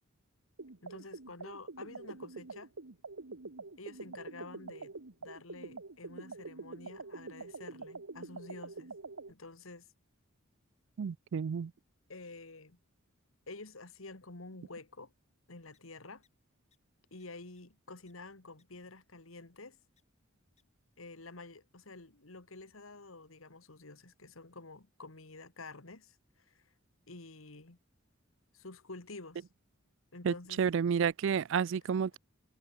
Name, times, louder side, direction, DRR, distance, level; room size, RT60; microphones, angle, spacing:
sound 1, 0.6-9.3, right 3 dB, 85° right, 1.4 m, -46 dB
voice 1, 0.8-2.7 3.8-4.9 5.2-8.9 9.3-9.9 12.1-12.8 13.5-15.1 15.5-16.2 17.1-19.8 21.0-26.6 27.1-27.8 28.5-29.4 30.1-30.6, left 3 dB, 90° left, 2.3 m, -49 dB
voice 2, 11.0-11.7 30.2-32.2, right 7 dB, 65° right, 0.4 m, -31 dB
sound 2, 15.7-15.8 16.2-16.3 16.7-16.8 17.2-17.3 17.6-17.7 18.1-18.2 18.6-18.7 20.0-20.1 20.6-20.7, left 7 dB, 35° left, 7.1 m, -71 dB
head